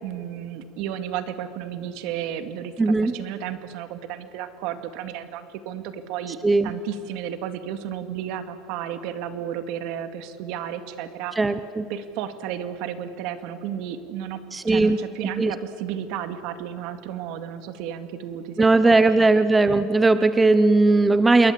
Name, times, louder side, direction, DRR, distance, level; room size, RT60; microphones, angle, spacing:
voice 1, 0.0-6.4 6.6-11.3 11.9-14.4 14.7-19.3, right 10 dB, 65° right, 9 dB, 2.2 m, -33 dB
voice 2, 2.8-3.1 6.4-6.7 11.4-11.8 14.5-15.0 15.4-15.5 18.6-21.5, right 3 dB, 10° right, 12 dB, 0.8 m, -18 dB
27.5 x 22.0 x 8.4 m, 2.5 s
supercardioid pair, 140°, 0 cm